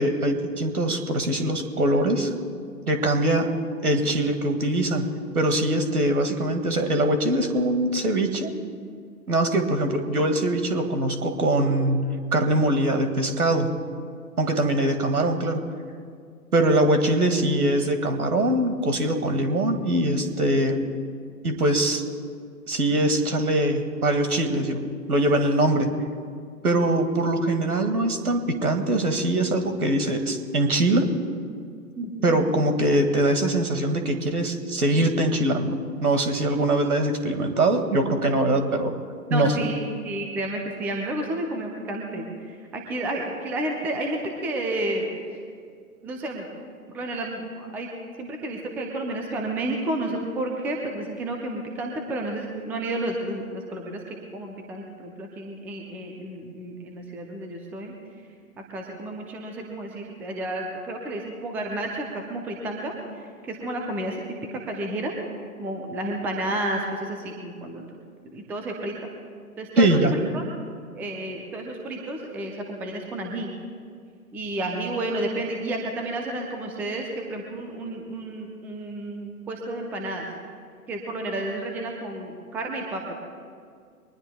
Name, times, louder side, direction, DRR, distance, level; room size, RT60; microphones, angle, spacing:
voice 1, 0.0-2.3 2.9-3.5 3.8-8.5 9.3-13.8 14.4-15.6 16.5-20.9 21.4-22.1 22.7-25.9 26.6-31.1 32.2-38.9 39.3-39.7 69.8-70.1, right 1 dB, 75° right, 6 dB, 2.1 m, -22 dB
voice 2, 32.0-32.4 39.3-45.4 46.0-46.5 46.9-47.9 48.2-57.9 58.7-65.1 65.6-67.9 68.3-68.9 69.6-69.9 70.3-70.4 70.9-73.5 74.3-80.3 80.9-83.1, right 1 dB, 5° right, 2 dB, 0.6 m, -31 dB
23.5 x 20.0 x 2.3 m, 2.1 s
figure-of-eight pair, 125°, 45 cm